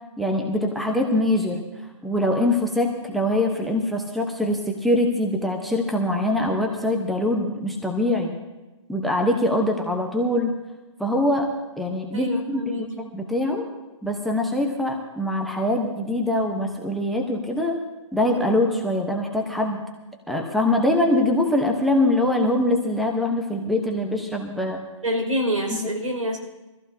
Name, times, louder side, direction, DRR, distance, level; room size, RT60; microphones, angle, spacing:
voice 1, 0.2-1.6 2.0-8.4 8.9-10.5 11.0-11.5 11.8-13.7 14.0-17.8 18.1-19.8 20.3-24.8, left 1 dB, ahead, 2 dB, 1.0 m, -23 dB
voice 2, 12.1-12.9 25.0-26.4, equal, 80° right, 2 dB, 5.3 m, -26 dB
23.0 x 14.5 x 2.8 m, 1.1 s
hypercardioid pair, 145°, 17 cm